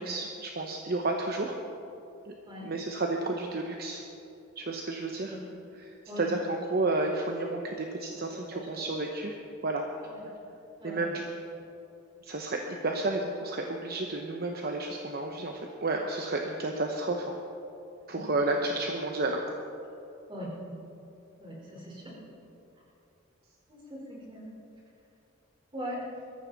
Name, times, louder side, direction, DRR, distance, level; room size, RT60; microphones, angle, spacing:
voice 1, 0.0-1.6 2.3-2.4 2.6-4.0 4.6-5.4 5.8-9.4 9.6-9.9 10.8-11.2 12.2-17.4 18.1-19.4, right 2 dB, 50° right, 2 dB, 0.9 m, -31 dB
voice 2, 6.1-6.4 8.1-8.9 10.1-10.2 10.8-11.1 18.1-18.4 20.3-20.5 21.4-22.2 23.7-24.5 25.7-26.0, equal, 25° right, -4 dB, 4.2 m, -41 dB
21.0 x 14.0 x 4.1 m, 2.8 s
head